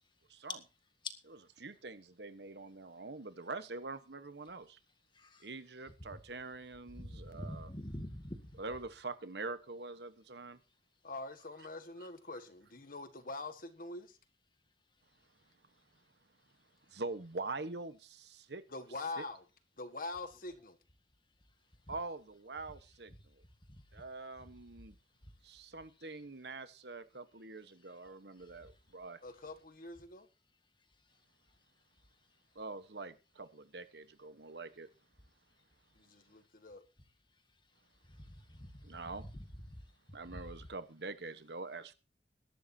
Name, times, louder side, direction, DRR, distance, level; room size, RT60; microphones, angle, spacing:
voice 1, 0.3-0.6 1.3-4.8 5.4-7.7 8.6-10.6 12.3-12.4 16.9-18.6 19.2-19.3 21.9-23.1 23.9-24.9 25.4-29.2 32.5-34.9 38.8-39.2 40.1-41.9, right 3 dB, 70° right, 1.2 m, -44 dB
voice 2, 7.0-8.4 38.2-38.8 39.7-39.8, left 1 dB, 25° left, 1.8 m, -44 dB
voice 3, 11.0-14.2 18.7-19.4 19.8-20.8 29.2-30.3 35.9-36.8, left 2 dB, 50° left, 1.6 m, -44 dB
21.5 x 11.5 x 2.8 m
head